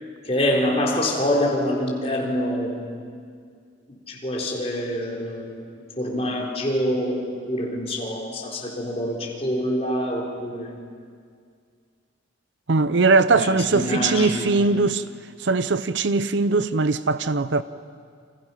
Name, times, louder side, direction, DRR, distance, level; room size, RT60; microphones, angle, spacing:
voice 1, 0.2-2.8 4.1-5.6 6.0-10.7 13.3-14.7, left 1 dB, 30° left, 4.2 m, -26 dB
voice 2, 12.7-15.0 15.4-17.6, right 3 dB, 65° right, 0.7 m, -20 dB
29.5 x 26.5 x 5.7 m
head